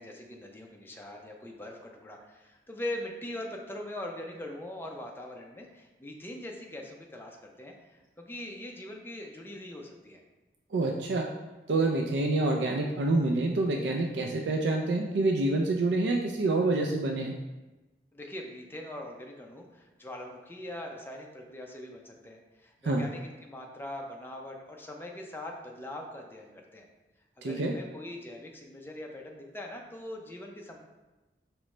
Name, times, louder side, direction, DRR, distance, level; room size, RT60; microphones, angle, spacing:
voice 1, 0.0-10.2 18.1-26.9 27.4-30.8, left 1 dB, 15° left, 1 dB, 0.5 m, -42 dB
voice 2, 10.7-11.3 11.7-17.4 22.8-23.0 27.4-27.7, right 2 dB, 80° right, 1 dB, 0.4 m, -27 dB
4.9 x 3.0 x 3.2 m, 1.1 s
head